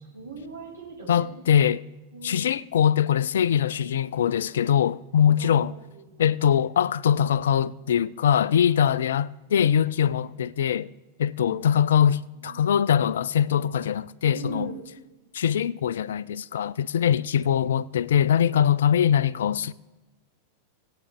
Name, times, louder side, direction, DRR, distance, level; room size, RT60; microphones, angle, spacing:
voice 1, 0.1-1.3 2.1-2.4 5.4-6.2 10.2-10.3 11.4-11.7 12.3-12.6 14.3-14.8, right 4 dB, 80° right, 4.3 m, -40 dB
voice 2, 1.1-1.8 2.2-5.7 6.2-10.9 11.2-14.7 15.3-19.7, left 9 dB, 60° left, 0.3 m, -22 dB
20.0 x 8.3 x 3.4 m
figure-of-eight pair, 90°, 0 cm